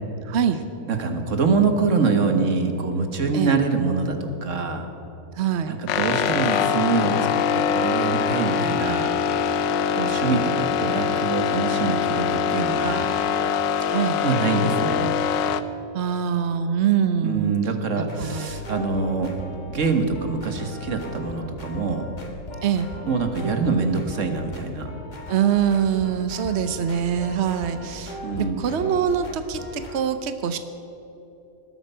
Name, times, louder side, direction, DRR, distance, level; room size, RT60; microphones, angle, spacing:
voice 1, 0.2-0.6 3.3-3.6 5.4-5.8 13.9-14.2 15.9-17.5 18.0-18.5 22.6-22.9 25.3-30.6, right 8 dB, 65° right, 9 dB, 0.6 m, -24 dB
voice 2, 0.9-4.9 5.7-9.1 9.9-13.1 14.2-15.1 17.2-19.3 19.7-22.1 23.0-24.9 28.2-28.6, right 4 dB, 45° right, 6 dB, 1.6 m, -25 dB
sound 1, 5.9-15.6, left 7 dB, 70° left, 1.3 m, -23 dB
sound 2, 18.1-30.0, left 1 dB, 25° left, 1.5 m, -38 dB
19.5 x 12.5 x 5.6 m, 3.0 s
omnidirectional pair, 2.1 m